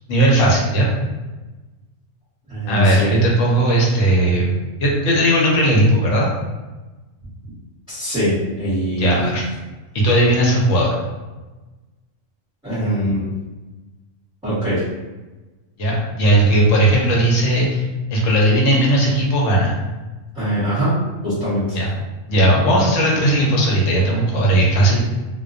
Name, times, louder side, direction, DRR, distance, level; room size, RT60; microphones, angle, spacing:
voice 1, 0.1-0.9 2.7-4.5 4.8-6.3 9.0-9.4 9.9-11.0 15.8-17.8 18.1-19.7 21.7-21.9 22.3-25.0, right 1 dB, 75° left, -2 dB, 1.0 m, -16 dB
voice 2, 2.5-3.1 7.9-9.2 12.6-13.3 14.4-14.8 20.3-20.9 21.2-21.8, equal, 5° right, -14 dB, 0.9 m, -22 dB
2.3 x 2.2 x 2.4 m, 1.2 s
omnidirectional pair, 1.3 m